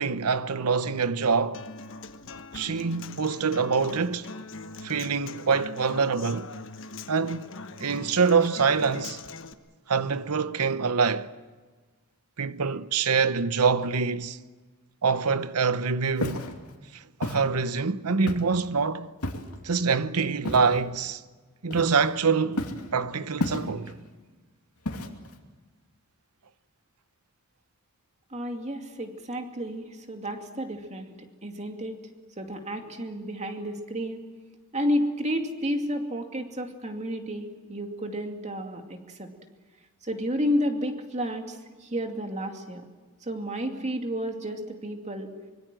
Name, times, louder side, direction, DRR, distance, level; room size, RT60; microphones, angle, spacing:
voice 1, 0.0-1.6 2.5-4.3 4.8-6.5 7.1-7.4 7.8-9.2 9.9-11.3 12.4-14.4 15.0-16.5 17.2-19.1 19.6-21.2 21.6-23.9, right 5 dB, 90° right, 0.9 m, -25 dB
Human voice / Acoustic guitar, 1.5-9.5, left 3 dB, 60° left, 1.3 m, -41 dB
Walk footsteps, 16.2-16.5 17.2-17.4 18.3-18.6 19.2-19.6 20.4-20.8 21.7-22.2 22.6-22.9 23.4-23.9 24.9-25.3, left 1 dB, 90° left, 2.7 m, -31 dB
voice 2, 28.3-31.1 31.4-32.0 32.4-34.2 34.7-39.3 40.1-41.6 41.8-42.8 43.3-45.3, equal, 30° right, 2.5 m, -31 dB
25.0 x 23.0 x 7.7 m
head